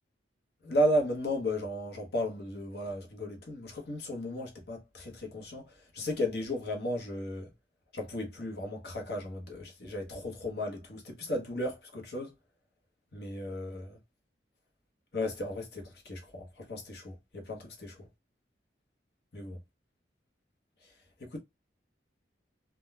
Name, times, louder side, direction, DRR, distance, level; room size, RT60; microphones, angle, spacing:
voice 1, 0.6-5.6 5.9-7.5 7.9-12.3 13.1-14.0 15.1-18.1 19.3-19.6 21.2-21.4, equal, 60° left, 1.0 m, -34 dB
3.7 x 2.2 x 2.3 m
head